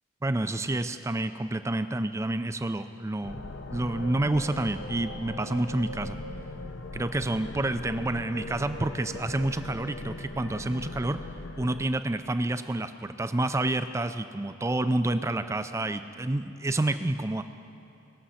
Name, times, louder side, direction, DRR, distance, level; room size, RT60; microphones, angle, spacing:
voice 1, 0.2-6.2 6.9-11.2 11.6-17.4, right 2 dB, 15° right, 10 dB, 0.4 m, -29 dB
sound 1, 3.2-11.9, left 2 dB, 60° left, 0.7 m, -39 dB
19.5 x 7.6 x 5.7 m, 2.9 s
head